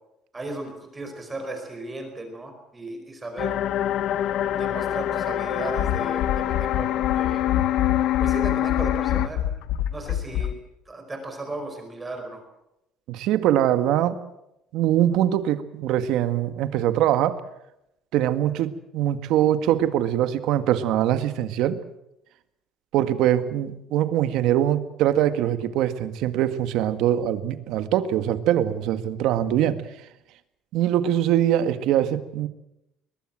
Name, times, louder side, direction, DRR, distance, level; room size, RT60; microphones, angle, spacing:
voice 1, 0.3-3.5 4.5-7.4 8.2-9.4 9.9-10.6 10.9-12.4, right 2 dB, 15° right, 4 dB, 4.9 m, -35 dB
sound 1, 3.4-9.3, left 12 dB, 55° left, 1.2 m, -25 dB
sound 2, 5.7-10.5, left 10 dB, 75° left, 1.4 m, -28 dB
voice 2, 13.1-14.2 14.7-17.4 18.1-21.8 22.9-29.8 30.7-32.5, right 11 dB, 65° right, 11 dB, 1.8 m, -23 dB
22.5 x 20.5 x 7.6 m, 0.85 s
cardioid pair, 160°, 0 cm